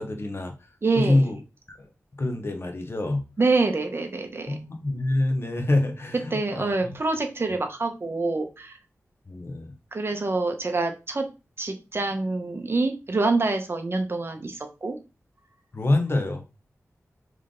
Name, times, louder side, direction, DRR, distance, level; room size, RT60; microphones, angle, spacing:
voice 1, 0.0-0.7 0.9-1.4 1.7-1.9 2.2-3.3 4.5-6.9 9.3-9.7 15.7-16.6, left 2 dB, 45° left, 5 dB, 0.9 m, -26 dB
voice 2, 0.8-1.2 3.4-4.6 6.3-8.8 9.9-11.3 11.6-15.0, right 3 dB, 45° right, 5 dB, 0.8 m, -26 dB
3.8 x 3.3 x 3.7 m, 0.29 s
wide cardioid pair, 85°, 6 cm